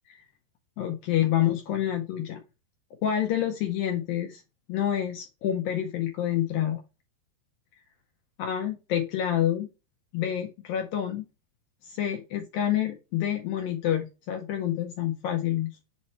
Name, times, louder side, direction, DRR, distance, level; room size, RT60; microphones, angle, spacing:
voice 1, 0.8-2.4 3.0-4.4 4.7-6.8 8.4-9.7 10.1-11.3 11.8-15.7, left 11 dB, 80° left, 3 dB, 2.0 m, -28 dB
7.7 x 3.1 x 4.1 m, 0.28 s
omnidirectional pair, 5.2 m